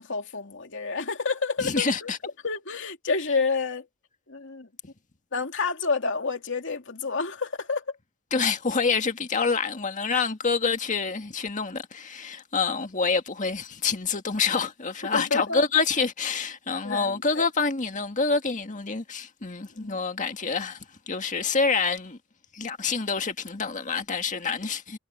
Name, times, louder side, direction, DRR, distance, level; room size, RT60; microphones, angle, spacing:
voice 1, 0.0-2.1 2.4-3.9 4.3-4.7 5.3-7.8 15.1-15.6 16.8-17.5 19.8-20.0, left 4 dB, 65° left, 2.8 m, -29 dB
voice 2, 1.6-2.2 8.3-22.2 22.5-25.0, left 4 dB, 40° left, 1.8 m, -27 dB
head